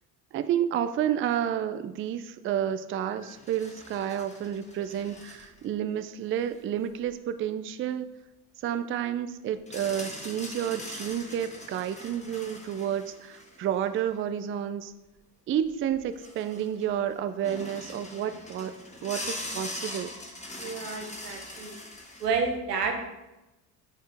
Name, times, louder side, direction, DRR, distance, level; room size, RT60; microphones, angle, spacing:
voice 1, 0.3-8.1 8.6-14.9 15.5-18.7 19.0-20.1, right 10 dB, 30° right, 11 dB, 0.4 m, -30 dB
sound 1, 3.1-5.7 6.3-6.4 9.7-14.1 15.6-15.7 15.9-17.0 17.4-22.3, left 1 dB, 15° left, 1.4 m, -42 dB
voice 2, 20.6-21.8 22.2-23.0, right 5 dB, 90° right, 3 dB, 0.9 m, -30 dB
7.1 x 4.4 x 3.4 m, 0.99 s
hypercardioid pair, 55°, 46 cm